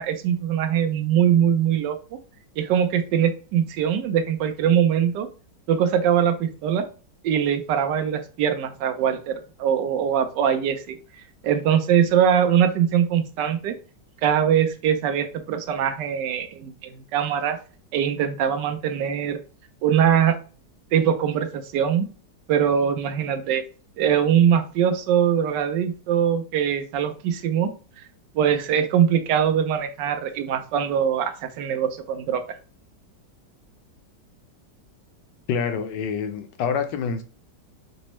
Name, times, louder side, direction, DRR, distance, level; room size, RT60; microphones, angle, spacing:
voice 1, 0.0-2.0 2.6-5.3 5.7-6.8 7.2-11.0 11.4-13.7 14.2-17.6 17.9-19.4 19.8-20.3 20.9-22.1 22.5-23.6 24.0-27.7 28.3-32.4, right 9 dB, 80° right, 1.2 m, -22 dB
voice 2, 35.5-37.2, left 6 dB, 85° left, 1.3 m, -26 dB
5.3 x 2.0 x 3.0 m
omnidirectional pair, 1.9 m